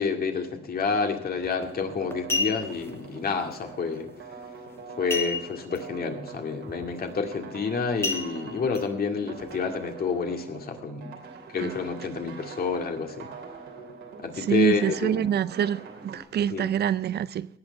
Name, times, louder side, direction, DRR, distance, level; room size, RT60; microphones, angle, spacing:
voice 1, 0.0-4.1 5.0-11.1 11.5-13.3 14.2-15.3 16.5-16.7, left 5 dB, 50° left, 2.1 m, -29 dB
sound 1, 1.4-1.6 2.1-2.9 5.1-5.8 6.1-6.2 6.7-6.9 8.0-8.8 9.4-9.5, left 3 dB, 10° left, 1.1 m, -30 dB
sound 2, 1.4-16.2, right 5 dB, 75° right, 3.0 m, -44 dB
voice 2, 14.4-17.5, right 9 dB, 55° right, 0.5 m, -26 dB
18.0 x 6.4 x 7.0 m
cardioid pair, 90°, 20 cm